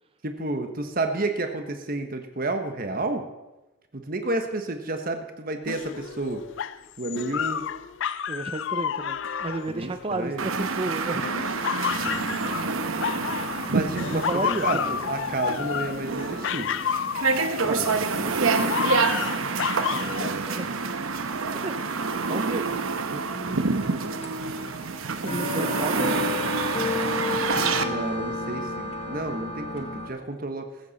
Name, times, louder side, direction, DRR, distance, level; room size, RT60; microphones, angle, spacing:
voice 1, 0.2-3.2 3.9-6.4 7.0-7.6 9.7-10.5 13.7-14.8 15.1-16.7 17.6-18.8 19.1-19.3 20.0-20.7 27.8-30.7, right 2 dB, 45° right, 6 dB, 1.2 m, -31 dB
sound 1, 5.7-10.7 11.2-13.7 14.0-18.1 18.5-20.3, left 8 dB, 60° left, 0.4 m, -30 dB
voice 2, 8.3-11.3 14.1-15.0 17.6-17.8 19.9-20.7 21.5-21.8 22.3-23.6 24.0-24.1 25.2-26.2, right 2 dB, 25° right, 8 dB, 0.5 m, -33 dB
sound 2, 10.4-27.8, right 4 dB, 80° right, 0.9 m, -27 dB
sound 3, 11.9-30.1, left 3 dB, 30° left, 1.4 m, -36 dB
15.0 x 14.0 x 4.2 m, 1.0 s
head